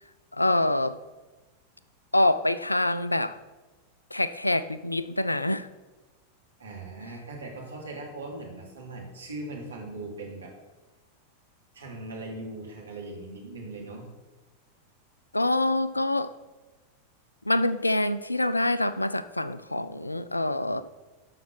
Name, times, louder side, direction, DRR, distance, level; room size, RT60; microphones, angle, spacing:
voice 1, 0.3-1.0 2.1-3.4 4.1-5.7 15.3-16.3 17.4-20.8, left 1 dB, 85° left, 15 dB, 0.5 m, -25 dB
voice 2, 6.6-10.5 11.7-14.1, right 2 dB, 70° right, -1 dB, 3.0 m, -39 dB
12.5 x 5.9 x 6.1 m, 1.2 s
figure-of-eight pair, 90°, 0 cm